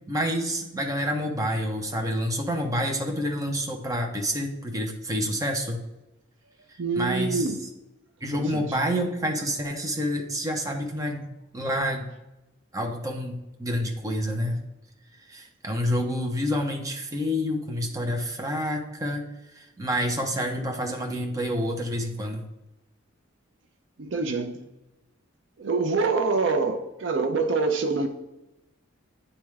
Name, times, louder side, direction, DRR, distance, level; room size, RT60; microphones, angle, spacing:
voice 1, 0.0-5.8 6.9-7.5 8.2-11.3 11.5-12.1 12.7-14.6 15.3-19.2 19.5-22.4, equal, 15° right, 0.7 m, -28 dB
voice 2, 6.8-7.6 8.3-8.7 24.0-24.6 25.6-28.1, right 3 dB, 60° right, 0.5 m, -25 dB
9.8 x 3.5 x 3.2 m
head